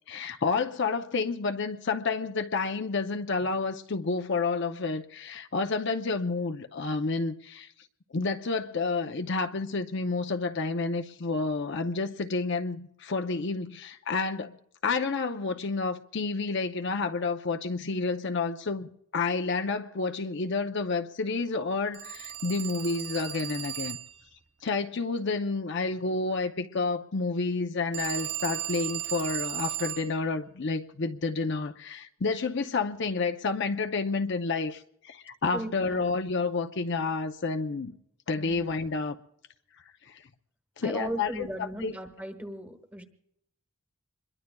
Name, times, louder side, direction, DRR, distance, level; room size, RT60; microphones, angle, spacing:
voice 1, 0.1-7.7 8.1-14.6 14.8-24.0 24.6-38.0 38.3-39.2 40.1-40.2 40.8-41.9, left 4 dB, 55° left, 0.6 m, -30 dB
Telephone, 21.9-24.3 27.9-30.1, right 13 dB, 55° right, 0.7 m, -35 dB
voice 2, 35.5-36.0 38.4-38.7 40.8-43.0, right 1 dB, 5° right, 1.3 m, -37 dB
26.0 x 22.0 x 2.3 m
head